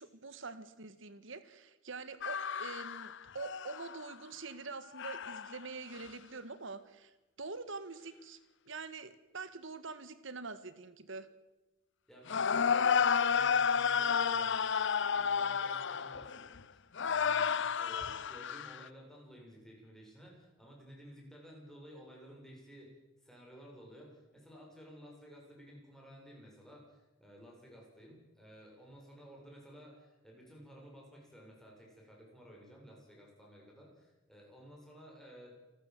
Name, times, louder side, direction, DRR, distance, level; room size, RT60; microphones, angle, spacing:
voice 1, 0.0-7.1 7.4-8.4 8.7-11.3, right 4 dB, 70° right, 12 dB, 1.7 m, -45 dB
sound 1, 2.2-4.1 5.0-5.6 6.0-6.1 12.3-16.6 17.0-18.9, left 6 dB, 65° left, 0.7 m, -31 dB
voice 2, 12.1-22.9 23.2-35.5, equal, ahead, -2 dB, 7.6 m, -55 dB
28.0 x 13.0 x 7.9 m, 1.1 s
head